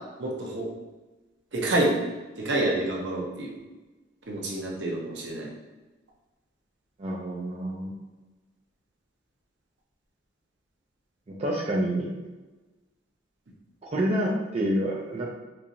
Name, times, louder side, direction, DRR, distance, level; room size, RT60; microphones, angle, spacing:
voice 1, 0.2-0.7 1.5-1.9 2.4-3.6 4.3-5.5, right 1 dB, 70° right, -2 dB, 0.8 m, -28 dB
voice 2, 7.0-7.9 11.4-12.1 13.9-15.3, right 1 dB, 35° right, -4 dB, 0.4 m, -27 dB
4.4 x 2.6 x 2.6 m, 1.2 s
head